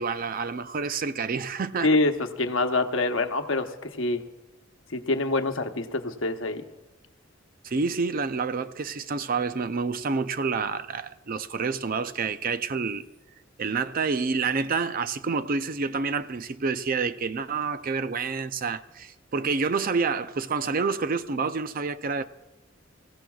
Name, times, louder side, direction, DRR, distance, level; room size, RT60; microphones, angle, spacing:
voice 1, 0.0-1.9 7.6-13.0 13.6-22.2, right 4 dB, 45° right, 0.5 m, -28 dB
voice 2, 1.8-2.1 2.4-4.2 4.9-6.6, left 2 dB, 80° left, 1.0 m, -25 dB
26.5 x 15.5 x 2.3 m
head